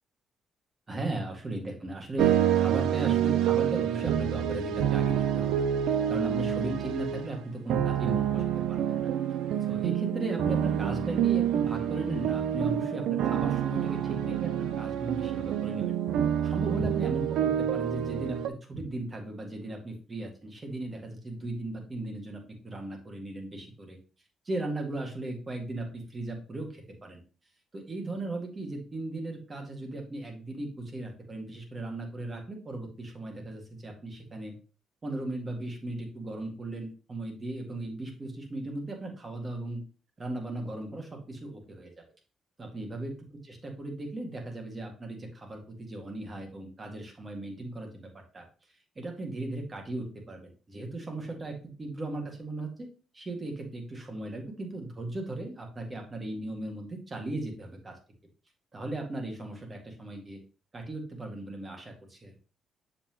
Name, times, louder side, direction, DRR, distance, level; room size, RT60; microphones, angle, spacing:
voice 1, 0.9-9.1 9.6-15.9 16.4-18.4 18.7-24.0 24.5-27.2 27.7-34.5 35.0-39.8 40.2-41.9 42.6-43.1 43.5-48.1 48.3-48.4 49.0-52.9 53.1-58.0 58.7-60.4 60.7-62.3, right 2 dB, 30° right, 3 dB, 2.0 m, -37 dB
sound 1, 2.2-18.5, right 10 dB, 85° right, 0.5 m, -27 dB
6.8 x 5.7 x 3.0 m, 0.35 s
cardioid pair, 90°, 0 cm